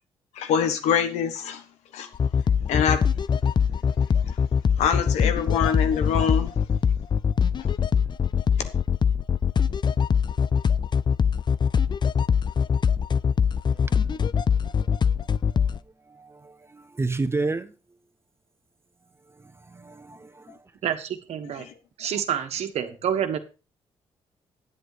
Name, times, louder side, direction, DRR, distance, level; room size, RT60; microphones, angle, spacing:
voice 1, 0.4-1.6 1.9-2.1 2.7-3.0 4.8-6.5 7.6-7.7, left 7 dB, 90° left, 1.2 m, -24 dB
sound 1, 2.1-15.8, left 7 dB, 40° left, 0.5 m, -22 dB
voice 2, 13.7-14.2 15.5-15.7 16.1-17.7 19.4-20.6, right 3 dB, 20° right, 1.2 m, -31 dB
voice 3, 20.8-21.7 22.0-23.4, right 9 dB, 75° right, 1.4 m, -28 dB
9.6 x 8.2 x 4.9 m
supercardioid pair, 65°, 11 cm